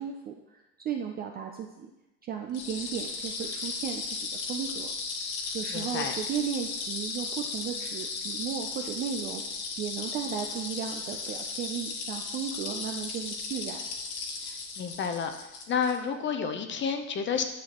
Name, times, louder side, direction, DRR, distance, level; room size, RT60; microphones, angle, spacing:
voice 1, 0.0-1.9 2.2-4.9 5.5-9.4 9.8-13.8, right 8 dB, 25° right, 3 dB, 0.3 m, -35 dB
sound 1, 2.5-16.0, left 4 dB, 55° left, 1.6 m, -36 dB
voice 2, 5.7-6.2 14.8-15.3 15.7-17.4, left 6 dB, 25° left, 7 dB, 0.7 m, -30 dB
10.5 x 6.4 x 2.9 m, 0.95 s
supercardioid pair, 120°, 45 cm